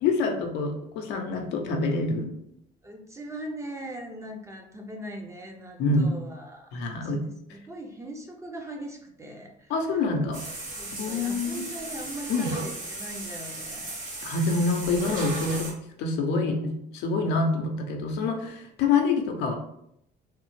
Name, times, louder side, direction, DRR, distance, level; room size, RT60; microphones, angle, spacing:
voice 1, 0.0-2.3 5.8-6.1 6.7-7.2 9.7-10.4 11.0-11.6 12.3-12.5 14.2-15.7 16.0-19.5, left 3 dB, 85° left, 3 dB, 0.6 m, -26 dB
voice 2, 2.8-9.7 10.2-10.3 10.8-14.0 14.7-14.9, right 1 dB, 15° right, 1 dB, 0.6 m, -40 dB
sound 1, 10.3-15.7, right 2 dB, 50° right, 1.5 m, -36 dB
3.2 x 2.0 x 3.0 m, 0.75 s
cardioid pair, 110°, 17 cm